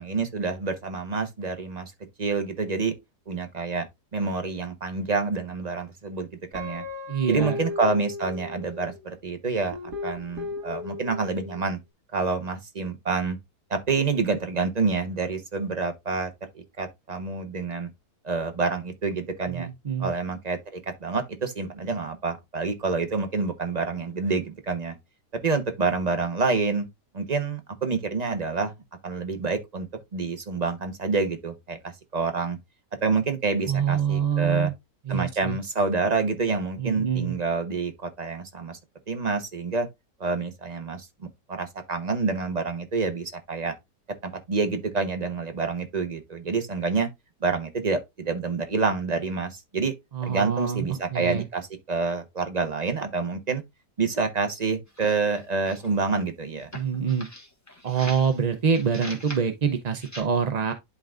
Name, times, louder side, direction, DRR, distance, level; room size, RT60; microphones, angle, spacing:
voice 1, 0.0-1.9 2.2-2.9 3.3-3.9 4.1-6.3 6.5-6.8 7.3-9.8 10.0-11.8 12.1-13.4 13.7-16.3 16.5-17.9 18.2-19.7 20.0-25.0 25.4-26.9 27.1-28.7 29.0-29.9 30.1-32.6 33.0-34.7 35.1-38.8 39.1-39.9 40.2-41.1 41.5-43.7 44.2-47.1 47.4-49.9 50.2-53.6 54.0-56.7, right 4 dB, 30° right, 1.0 m, -27 dB
Guitar, 6.5-9.0 9.7-11.6, left 3 dB, 85° right, 2.4 m, -36 dB
voice 2, 7.1-7.6 19.5-20.1 33.7-34.7 35.1-35.6 36.8-37.4 50.1-51.5 56.7-57.3 57.8-60.7, right 7 dB, 50° right, 0.5 m, -26 dB
sound 1, 54.9-56.0 56.6-58.4 58.7-59.5 59.9-60.2, left 1 dB, 10° left, 1.5 m, -42 dB
11.5 x 3.8 x 2.5 m
omnidirectional pair, 1.7 m